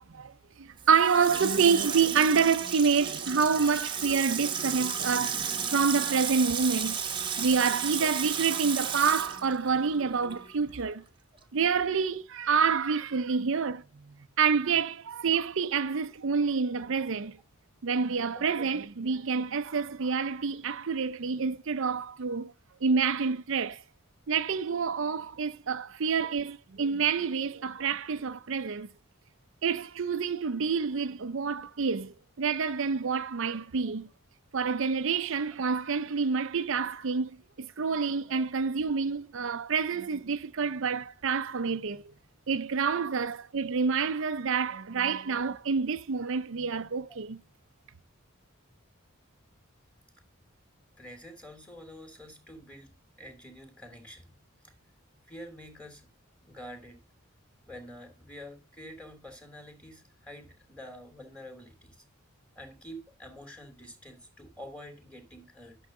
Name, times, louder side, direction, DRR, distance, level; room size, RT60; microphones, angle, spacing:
voice 1, 0.6-7.0 7.4-11.0 11.5-13.8 14.4-17.4 17.8-22.5 22.8-23.8 24.3-28.9 29.6-34.1 34.5-37.3 37.6-42.1 42.5-47.4, right 5 dB, 60° right, 0.6 m, -28 dB
Water tap faucet / Sink (filling or washing), 0.8-10.5 10.8-10.9, right 7 dB, 25° right, 1.1 m, -33 dB
voice 2, 18.3-18.7 33.8-33.9 38.3-38.4 47.1-47.2 51.0-54.4 54.6-54.7 55.3-56.1 56.4-57.0 57.7-62.0 62.5-65.8, equal, 5° left, 3.0 m, -47 dB
12.0 x 7.0 x 3.9 m
head